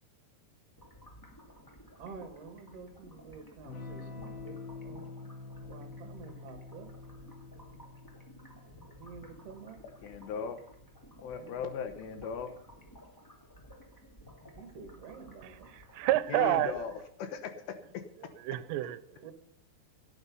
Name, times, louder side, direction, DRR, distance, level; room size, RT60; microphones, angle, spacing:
sound 1, 0.8-17.2, equal, 20° left, 0.5 m, -55 dB
voice 1, 2.0-5.1 5.5-6.9 8.9-9.8 11.3-11.6 14.5-15.7 19.2-19.3, right 5 dB, 45° right, 2.5 m, -49 dB
Electric guitar / Strum, 3.6-11.9, left 3 dB, 60° left, 4.2 m, -48 dB
voice 2, 10.0-10.6 11.2-12.5 16.3-17.5 17.9-18.0, left 6 dB, 75° left, 3.1 m, -37 dB
voice 3, 15.4-16.8 18.4-19.3, right 14 dB, 80° right, 2.9 m, -30 dB
18.0 x 9.6 x 5.4 m
omnidirectional pair, 5.2 m